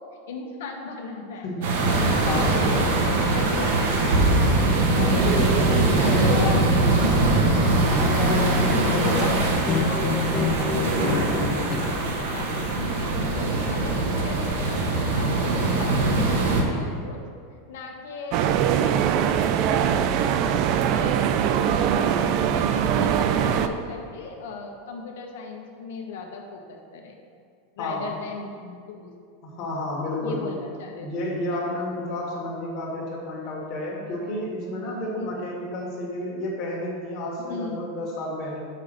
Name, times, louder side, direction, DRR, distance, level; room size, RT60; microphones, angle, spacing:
voice 1, 0.1-1.5 1.8-4.2 6.0-6.8 8.5-17.2 17.7-27.2 27.8-29.1 30.2-31.1 35.1-35.5 37.4-37.9, left 3 dB, 75° left, 2 dB, 1.2 m, -37 dB
sound 1, 1.6-16.6, right 2 dB, 65° right, 1.1 m, -22 dB
voice 2, 2.2-2.5 4.9-7.3 7.9-9.3 27.8-28.1 29.4-30.4 31.0-38.6, left 1 dB, 35° left, -3 dB, 1.7 m, -30 dB
sound 2, 4.7-11.8, left 4 dB, 15° left, 0.6 m, -29 dB
sound 3, 18.3-23.7, right 9 dB, 40° right, 0.3 m, -22 dB
5.6 x 5.0 x 6.6 m, 2.2 s
supercardioid pair, 170°, 0 cm